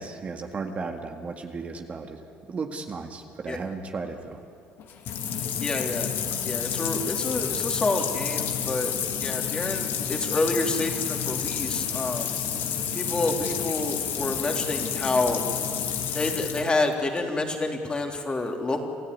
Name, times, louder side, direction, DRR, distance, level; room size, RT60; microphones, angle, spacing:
voice 1, 0.0-2.2 2.5-4.4, right 4 dB, 35° right, 4 dB, 1.9 m, -35 dB
sound 1, 4.8-17.2, left 8 dB, 60° left, 2.3 m, -30 dB
voice 2, 5.6-6.1 6.4-8.9 9.2-12.3 12.9-15.4 16.1-18.8, left 2 dB, 25° left, 3 dB, 3.2 m, -28 dB
27.0 x 14.0 x 9.7 m, 2.4 s
supercardioid pair, 90°, 4 cm